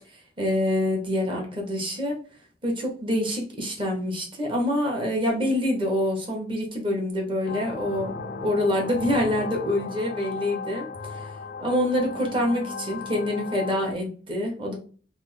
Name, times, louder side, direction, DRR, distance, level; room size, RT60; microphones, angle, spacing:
voice 1, 0.4-2.2 2.6-8.1 8.4-10.9 11.1-11.3 11.6-14.8, left 1 dB, 30° right, 0 dB, 1.0 m, -26 dB
sound 1, 7.4-13.9, left 4 dB, 55° left, 0.3 m, -36 dB
3.4 x 2.1 x 3.2 m, 0.41 s
head